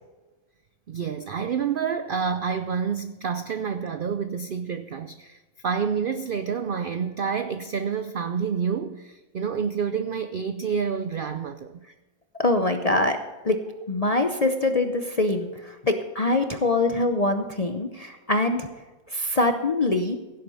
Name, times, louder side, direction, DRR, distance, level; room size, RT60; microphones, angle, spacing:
voice 1, 0.9-11.8, right 6 dB, 70° right, 0.5 m, -28 dB
voice 2, 12.4-13.2 13.4-13.6 13.9-18.7 19.1-20.2, left 2 dB, 40° left, 0.5 m, -24 dB
16.5 x 7.7 x 5.5 m
omnidirectional pair, 1.6 m